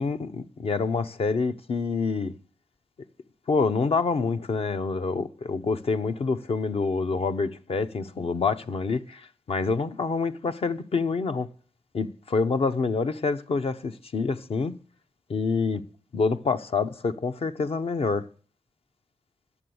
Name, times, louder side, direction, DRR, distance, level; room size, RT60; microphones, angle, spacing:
voice 1, 0.0-2.3 3.5-11.5 11.9-14.8 15.3-15.8 16.1-18.3, left 4 dB, 60° left, 0.8 m, -27 dB
11.5 x 7.0 x 9.4 m
wide cardioid pair, 95°, 11 cm